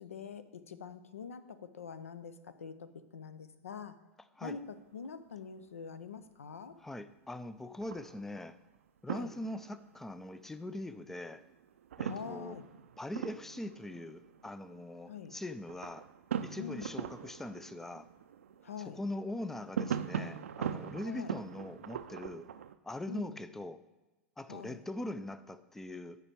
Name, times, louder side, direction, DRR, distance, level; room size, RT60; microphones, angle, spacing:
voice 1, 0.0-4.0 4.4-6.8 9.1-9.3 12.1-12.7 15.1-15.4 16.6-16.9 18.6-19.0 21.0-21.3 23.1-23.4 24.5-24.8, left 6 dB, 75° left, 0.5 m, -45 dB
sound 1, 4.5-5.2 5.5-5.6 6.1-6.8 7.8-8.5 9.0-22.8, right 8 dB, 70° right, 0.4 m, -41 dB
voice 2, 6.8-8.6 9.0-11.4 12.0-12.6 13.0-16.1 16.4-18.1 18.9-22.5 22.8-23.8 24.4-26.2, left 1 dB, 5° left, 0.3 m, -42 dB
9.8 x 4.6 x 4.5 m
figure-of-eight pair, 95°, 8 cm